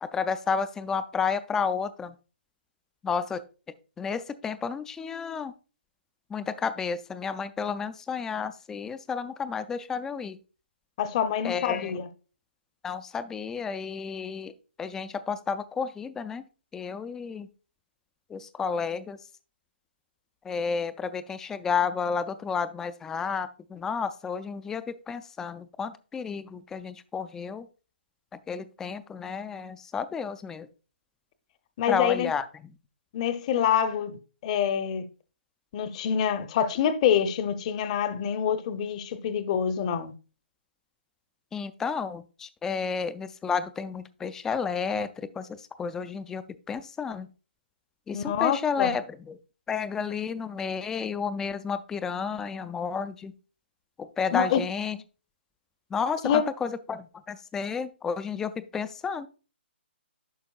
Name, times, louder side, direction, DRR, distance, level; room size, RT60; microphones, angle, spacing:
voice 1, 0.0-2.1 3.0-3.4 4.0-5.5 6.3-10.4 11.4-12.0 12.8-14.5 14.8-16.4 16.7-17.5 18.3-19.2 20.4-27.7 28.3-30.7 31.9-32.5 41.5-47.3 48.1-49.4 49.7-53.3 54.0-55.0 55.9-59.3, left 6 dB, 10° left, 0.3 m, -31 dB
voice 2, 11.0-12.1 31.8-32.3 33.1-35.0 35.7-40.1 48.1-48.9 54.3-54.6 56.2-56.4, left 8 dB, 35° left, 0.7 m, -26 dB
11.0 x 5.1 x 2.4 m
figure-of-eight pair, 140°, 6 cm